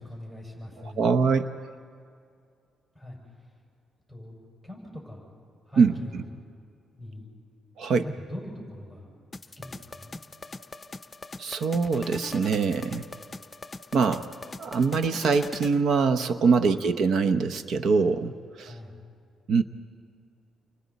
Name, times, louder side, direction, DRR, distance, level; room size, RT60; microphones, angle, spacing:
voice 1, 0.0-1.1 2.9-3.6 4.1-4.4 4.6-5.3 5.7-6.3 6.9-7.3 7.9-9.1 9.4-10.2 16.6-16.9 18.6-19.0, left 1 dB, 10° right, -2 dB, 6.0 m, -42 dB
voice 2, 1.0-1.5 5.8-5.9 7.8-8.0 11.4-13.0 13.9-14.3 14.6-18.3 18.6-18.7 19.5-19.6, right 5 dB, 65° right, 9 dB, 0.8 m, -23 dB
sound 1, 9.3-15.8, left 3 dB, 25° left, 0.7 m, -42 dB
30.0 x 24.5 x 4.2 m, 2.3 s
cardioid pair, 90°, 0 cm